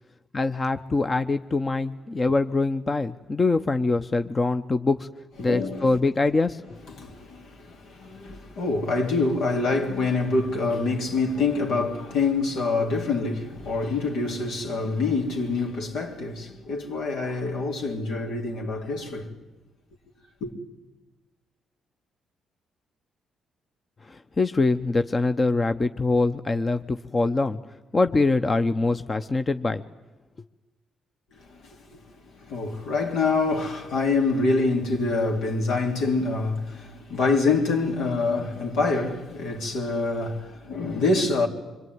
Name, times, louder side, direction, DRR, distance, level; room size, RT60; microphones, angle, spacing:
voice 1, 0.3-5.1 5.4-6.6 24.0-27.6 27.9-29.8, left 3 dB, 30° left, 0.8 m, -24 dB
voice 2, 5.4-5.9 7.0-19.4 20.4-20.5 31.4-32.0 32.4-41.5, left 3 dB, 80° left, 3.4 m, -26 dB
26.0 x 22.5 x 9.5 m
cardioid pair, 90°, 0 cm